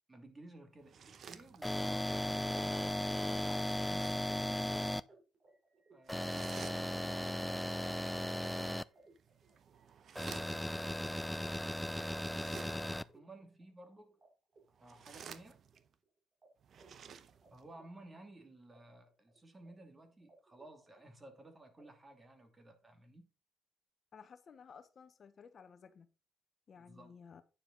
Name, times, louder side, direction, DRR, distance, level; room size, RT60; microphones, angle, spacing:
voice 1, 0.1-4.2 5.9-7.5 10.1-10.6 12.6-14.2 14.7-15.6 17.5-23.3 26.7-27.2, right 1 dB, 25° right, 2.6 m, -56 dB
sound 1, 0.8-2.0 3.5-4.4 6.1-7.2 9.0-10.9 12.2-13.1 14.7-15.9 16.6-17.7, right 7 dB, 60° right, 0.9 m, -54 dB
sound 2, 1.6-5.0 6.1-8.8 10.2-13.0, left 1 dB, 5° left, 0.4 m, -36 dB
sound 3, 5.0-14.3 14.5-16.1 16.4-16.5 16.7-18.8 19.0-19.7 20.0-21.4 21.8-21.9, right 3 dB, 40° right, 3.9 m, -67 dB
voice 2, 24.1-26.1 26.7-27.4, left 6 dB, 50° left, 1.0 m, -56 dB
9.5 x 6.9 x 3.9 m
cardioid pair, 90°, 0 cm